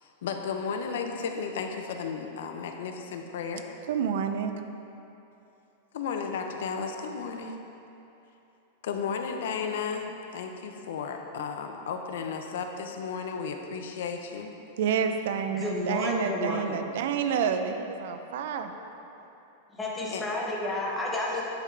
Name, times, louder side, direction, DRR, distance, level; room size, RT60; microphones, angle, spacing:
voice 1, 0.0-3.7 5.9-7.5 8.8-14.5 20.1-20.2, left 5 dB, 70° left, 4 dB, 0.6 m, -34 dB
voice 2, 3.9-4.5 14.8-18.7, right 7 dB, 65° right, 7 dB, 0.4 m, -29 dB
voice 3, 15.5-16.8 19.7-21.4, left 1 dB, 10° left, -4 dB, 0.8 m, -31 dB
9.7 x 3.8 x 3.3 m, 2.9 s
supercardioid pair, 165°, 0 cm